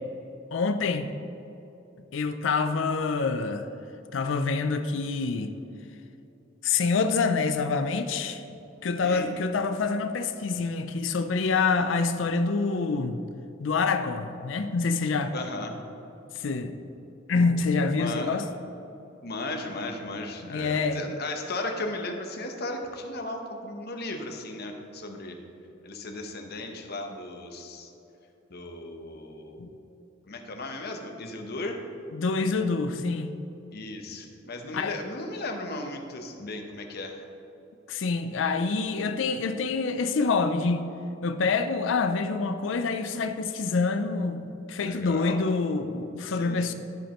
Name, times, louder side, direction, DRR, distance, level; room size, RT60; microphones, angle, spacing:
voice 1, 0.5-1.1 2.1-3.7 4.1-5.5 6.6-8.4 8.8-13.2 13.6-15.3 16.3-16.8 17.3-18.5 20.4-21.0 29.6-29.7 32.1-33.3 34.7-35.0 37.9-40.9 41.2-46.7, left 4 dB, 70° left, 8 dB, 0.5 m, -26 dB
voice 2, 15.3-15.7 17.9-18.4 19.2-25.4 25.8-27.9 28.5-29.6 30.3-31.8 33.7-37.2 44.8-45.4 46.3-46.7, left 2 dB, 55° left, 4 dB, 0.9 m, -36 dB
14.0 x 5.2 x 3.0 m, 2.9 s
head